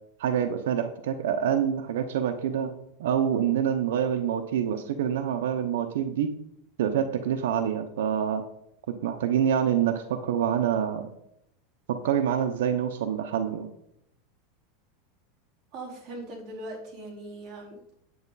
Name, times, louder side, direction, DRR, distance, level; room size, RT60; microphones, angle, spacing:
voice 1, 0.2-2.7 3.0-6.3 6.8-8.5 8.9-11.1 11.9-13.7, right 9 dB, 85° right, 7 dB, 0.9 m, -26 dB
voice 2, 15.7-17.9, right 1 dB, 30° right, -4 dB, 4.1 m, -40 dB
9.5 x 8.6 x 4.1 m, 0.76 s
supercardioid pair, 165°, 0 cm